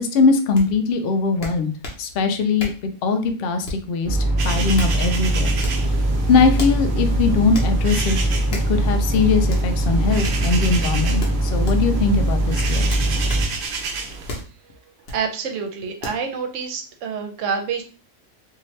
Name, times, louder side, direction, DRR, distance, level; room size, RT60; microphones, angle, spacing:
voice 1, 0.0-1.7 2.0-4.2 4.4-5.5 6.3-8.2 8.7-12.8, left 4 dB, 70° left, 6 dB, 0.5 m, -21 dB
sound 1, 0.6-0.7 1.4-2.0 2.6-2.9 3.6-3.9 4.5-5.0 5.6-5.9 6.6-6.8 7.5-7.7 8.5-8.7 9.5-9.7 10.2-10.4 11.2-11.8 12.9-13.5 14.3-14.5 15.1-15.2 16.0-16.2, left 2 dB, 50° left, 0.9 m, -33 dB
sound 2, 4.0-13.4, right 1 dB, 15° right, 1.1 m, -21 dB
sound 3, 4.4-14.4, right 4 dB, 85° right, 0.4 m, -32 dB
voice 2, 15.1-17.8, right 6 dB, 70° right, 5 dB, 0.9 m, -27 dB
2.7 x 2.5 x 3.1 m, 0.37 s
omnidirectional pair, 1.5 m